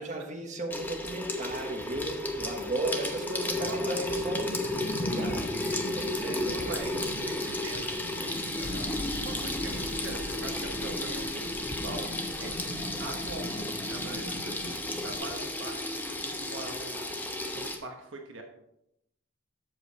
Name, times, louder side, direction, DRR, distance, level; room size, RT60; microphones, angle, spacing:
voice 1, 0.0-6.8, right 2 dB, 35° right, 1 dB, 1.3 m, -36 dB
Water tap faucet / Sink (filling or washing), 0.7-17.8, left 1 dB, 10° left, 0.8 m, -33 dB
voice 2, 1.5-2.0 2.9-4.3 6.2-17.1 17.4-18.4, right 2 dB, 65° right, 2 dB, 1.0 m, -43 dB
sound 1, 3.5-15.2, left 1 dB, 45° left, 0.7 m, -41 dB
sound 2, 8.6-14.7 15.2-15.3, left 1 dB, 90° left, 1.0 m, -44 dB
7.8 x 6.9 x 4.1 m, 0.82 s
head